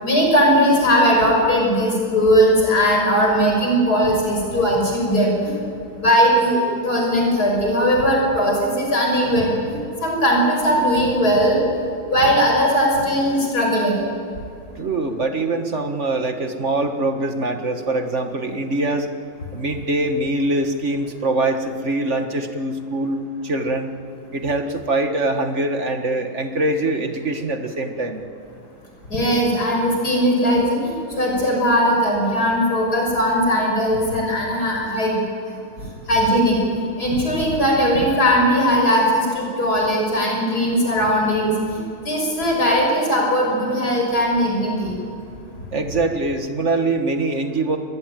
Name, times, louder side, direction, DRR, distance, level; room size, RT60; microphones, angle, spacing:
voice 1, 0.0-5.5 6.0-11.6 12.1-14.0 29.1-35.2 36.1-36.6 37.0-44.9, equal, 45° left, 0 dB, 6.4 m, -19 dB
voice 2, 14.7-19.1 19.5-23.9 24.3-28.2 45.7-47.8, right 2 dB, 35° right, 6 dB, 1.7 m, -23 dB
24.0 x 21.0 x 9.1 m, 2.4 s
omnidirectional pair, 2.3 m